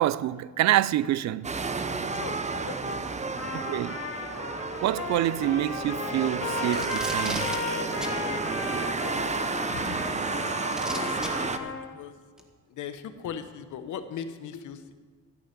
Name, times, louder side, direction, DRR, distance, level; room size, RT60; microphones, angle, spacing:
voice 1, 0.0-1.5 3.5-4.0 4.8-7.5, right 13 dB, 65° right, 0.4 m, -26 dB
sound 1, 1.4-11.6, right 4 dB, 25° right, 0.7 m, -31 dB
voice 2, 2.1-3.2 9.7-10.5 10.9-12.2 12.7-14.9, left 7 dB, 75° left, 1.0 m, -39 dB
Trumpet, 3.4-11.9, left 4 dB, 45° left, 1.9 m, -35 dB
Packing tape duct tape, 6.7-7.6 8.0-8.2 9.5-9.6 10.7-11.3 12.4-12.5, equal, ahead, 1.5 m, -35 dB
13.5 x 5.6 x 9.4 m
cardioid pair, 90°, 30 cm